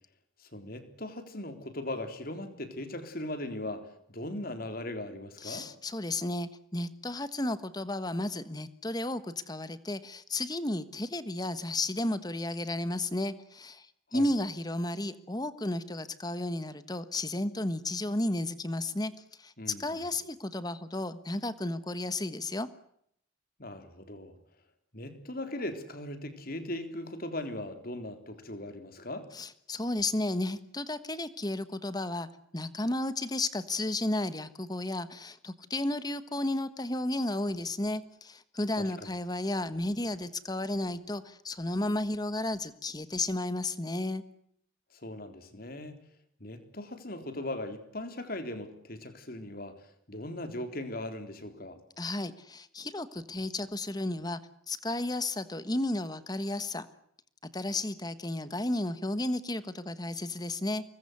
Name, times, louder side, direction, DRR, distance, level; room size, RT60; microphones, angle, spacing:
voice 1, 0.4-5.7 14.1-14.3 19.6-20.1 23.6-24.4 24.9-29.3 38.8-39.1 44.9-46.0 46.4-51.8, left 1 dB, 50° left, 8 dB, 3.7 m, -39 dB
voice 2, 5.4-19.1 19.4-19.5 19.8-22.7 29.3-44.2 52.0-54.4 54.7-56.9 57.5-60.8, left 1 dB, 20° left, 13 dB, 1.4 m, -33 dB
25.0 x 20.5 x 8.1 m, 0.71 s
head